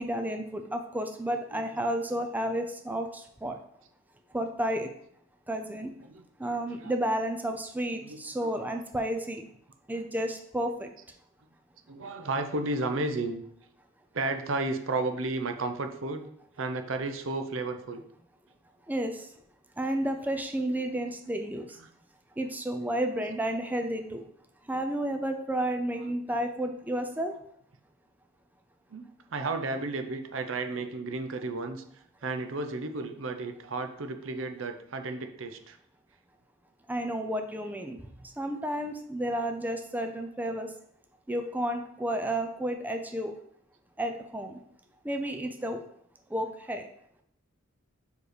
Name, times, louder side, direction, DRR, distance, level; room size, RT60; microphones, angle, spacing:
voice 1, 0.0-3.6 4.3-4.9 5.5-5.9 6.4-9.4 9.9-10.9 18.9-19.3 19.8-21.7 22.4-24.2 24.7-27.3 36.9-38.0 38.4-40.7 41.3-43.3 44.0-44.5 45.0-45.8 46.3-46.9, right 1 dB, 10° right, 5 dB, 0.5 m, -31 dB
voice 2, 1.5-1.8 6.0-6.9 8.0-8.8 11.9-13.4 14.1-16.2 16.6-18.0 21.8-21.9 26.0-26.2 28.9-31.8 32.2-35.8, right 3 dB, 70° right, 7 dB, 0.7 m, -33 dB
4.7 x 4.6 x 5.0 m, 0.68 s
head